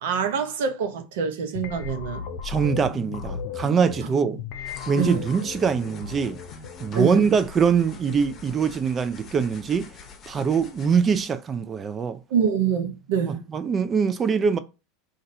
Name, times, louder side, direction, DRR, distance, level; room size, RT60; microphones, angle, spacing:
voice 1, 0.0-2.2 5.0-5.3 6.9-7.3 12.3-13.4, right 7 dB, 75° right, 0.8 m, -25 dB
sound 1, 1.5-8.4, left 6 dB, 60° left, 0.6 m, -37 dB
voice 2, 2.4-4.4 4.9-6.4 6.8-9.9 10.3-12.2 13.2-14.6, right 6 dB, 30° right, 0.5 m, -23 dB
sound 2, 4.7-11.2, left 6 dB, 35° left, 0.9 m, -46 dB
2.6 x 2.5 x 4.2 m
hypercardioid pair, 100°, 0 cm